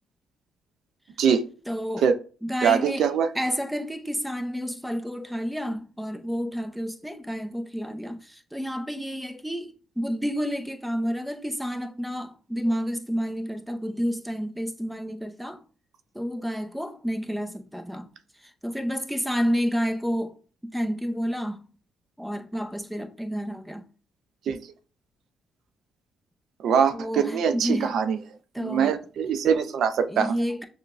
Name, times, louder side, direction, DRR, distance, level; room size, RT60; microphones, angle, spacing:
voice 1, 1.7-2.1 2.4-15.6 16.1-18.1 18.4-20.4 20.7-21.6 22.2-23.9 26.9-28.0 28.5-29.0 30.1-30.7, equal, 5° right, 0.6 m, -30 dB
voice 2, 2.6-3.3 24.5-24.6 26.6-28.2 28.6-30.4, right 7 dB, 70° right, 0.4 m, -23 dB
6.5 x 2.2 x 2.4 m
cardioid pair, 90°, 0 cm